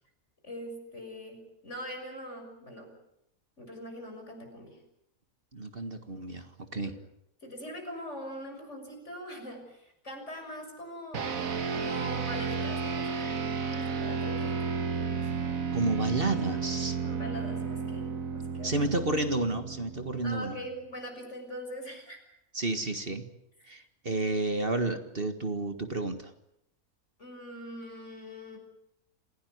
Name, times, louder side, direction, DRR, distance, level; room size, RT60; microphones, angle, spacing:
voice 1, 0.4-2.9 3.6-4.8 6.7-6.9 7.4-11.3 11.7-15.3 17.0-18.9 20.2-22.2 27.2-28.6, equal, 55° left, 3 dB, 7.0 m, -42 dB
voice 2, 5.5-6.9 15.7-17.0 18.6-20.6 22.5-23.3 23.7-26.3, right 2 dB, 40° right, 8 dB, 1.9 m, -31 dB
sound 1, 11.1-20.8, right 5 dB, 70° right, 1.9 m, -33 dB
27.5 x 17.5 x 9.5 m, 0.81 s
omnidirectional pair, 1.5 m